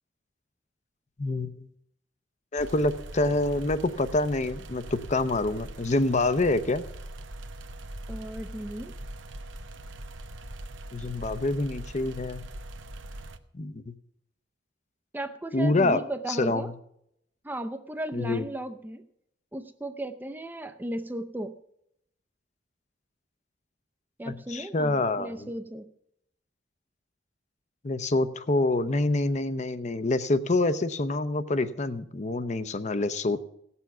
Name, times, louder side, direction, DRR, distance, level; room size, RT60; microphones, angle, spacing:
voice 1, 1.2-1.7 2.5-6.8 10.9-12.4 13.5-13.8 15.5-16.0 16.3-16.7 18.1-18.5 24.3-25.5 27.8-33.4, left 2 dB, 40° left, 12 dB, 0.7 m, -26 dB
sound 1, 2.6-13.4, right 1 dB, 85° right, 0.9 m, -42 dB
voice 2, 8.1-8.9 15.1-16.7 17.4-19.0 19.5-21.5 24.2-25.9, right 1 dB, 10° right, 9 dB, 0.6 m, -35 dB
17.0 x 7.0 x 6.0 m, 0.75 s
head